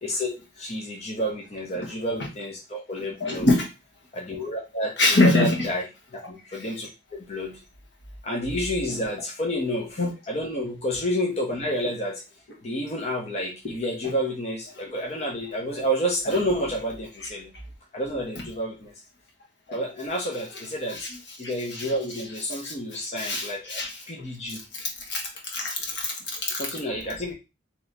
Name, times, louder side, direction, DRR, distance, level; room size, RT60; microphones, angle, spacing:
voice 1, 0.0-3.5 4.1-7.6 8.2-12.2 12.6-17.5 17.9-18.9 19.7-21.1 21.4-24.6 26.6-27.3, equal, 35° left, -1 dB, 0.7 m, -30 dB
voice 2, 3.2-3.7 5.0-5.5 10.0-10.1 21.0-21.1 21.7-21.9 22.6-22.7 23.2-23.9 24.8-25.2 25.5-26.6, left 2 dB, 65° left, 1 dB, 1.2 m, -23 dB
3.2 x 3.0 x 3.9 m, 0.27 s
head